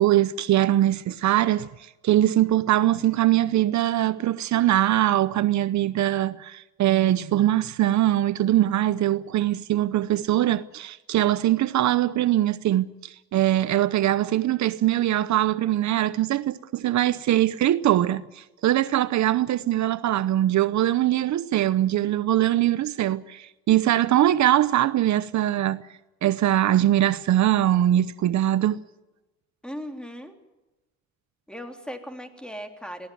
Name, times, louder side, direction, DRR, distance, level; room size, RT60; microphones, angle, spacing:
voice 1, 0.0-1.7 2.0-25.9 26.2-28.8, right 13 dB, 70° right, 0.8 m, -22 dB
voice 2, 29.6-30.4 31.5-33.1, equal, 5° left, 3.4 m, -37 dB
23.0 x 17.0 x 9.3 m
cardioid pair, 90°, 30 cm